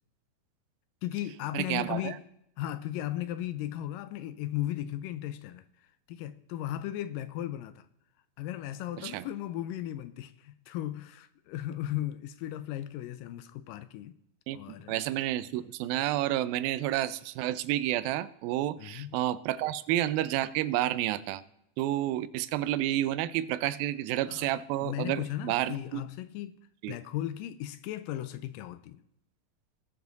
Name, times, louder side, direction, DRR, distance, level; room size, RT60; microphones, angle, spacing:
voice 1, 1.0-2.2 2.6-5.7 6.1-7.8 8.4-14.1 14.5-15.0 18.8-19.1 24.3-24.5 24.8-26.6 26.9-29.0, left 13 dB, 80° left, 2.0 m, -36 dB
voice 2, 1.5-2.2 9.0-9.3 14.5-14.6 14.9-21.4 21.8-26.0 26.8-27.0, right 14 dB, 90° right, 2.4 m, -30 dB
19.0 x 7.0 x 4.0 m
omnidirectional pair, 4.1 m